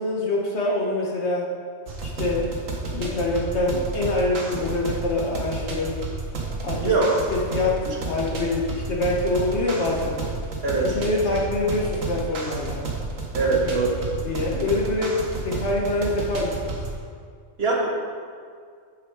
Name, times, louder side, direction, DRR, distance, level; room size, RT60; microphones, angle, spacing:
voice 1, 0.0-1.5 2.0-2.6 2.9-5.9 6.6-6.9 7.3-10.2 10.8-12.8 13.4-13.6 14.1-16.8, left 2 dB, 60° left, -2 dB, 1.5 m, -25 dB
sound 1, 1.9-17.0, right 3 dB, 75° right, 1.7 m, -31 dB
voice 2, 6.8-7.2 10.6-11.0 13.3-14.0 17.6-17.9, right 3 dB, 50° right, -2 dB, 1.9 m, -22 dB
11.0 x 7.3 x 4.8 m, 2.1 s
omnidirectional pair, 1.4 m